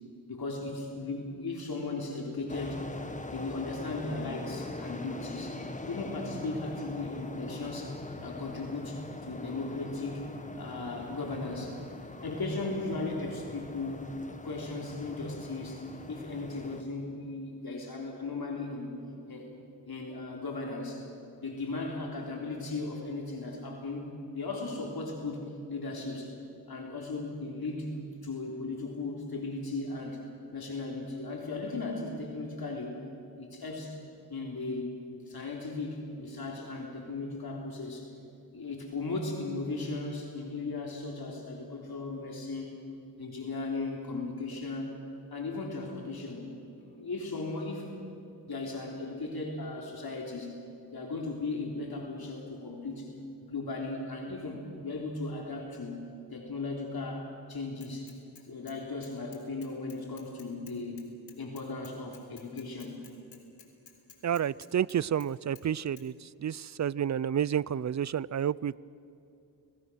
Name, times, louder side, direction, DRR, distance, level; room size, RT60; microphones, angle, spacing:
voice 1, 0.3-2.8 3.2-5.6 5.9-10.3 10.6-11.8 12.2-14.1 14.4-19.0 19.3-19.5 19.8-21.1 21.4-25.4 25.7-26.3 26.7-27.9 28.2-30.2 30.5-33.0 33.4-33.9 34.3-38.1 38.5-42.7 43.2-44.9 45.3-46.5 46.8-47.9 48.5-50.6 50.9-53.1 53.4-56.0 56.3-58.1 58.5-61.0 61.4-63.0, left 3 dB, 55° left, -1 dB, 3.8 m, -37 dB
sound 1, 2.5-16.8, left 2 dB, 15° left, 1.7 m, -42 dB
Bicycle / Mechanisms, 57.8-58.8 59.0-65.3 65.6-65.7 66.0-66.1, left 7 dB, 85° left, 3.8 m, -54 dB
voice 2, 64.2-66.1 66.4-68.8, right 9 dB, 40° right, 22 dB, 0.5 m, -30 dB
30.0 x 20.0 x 6.4 m, 2.7 s
cardioid pair, 80°, 43 cm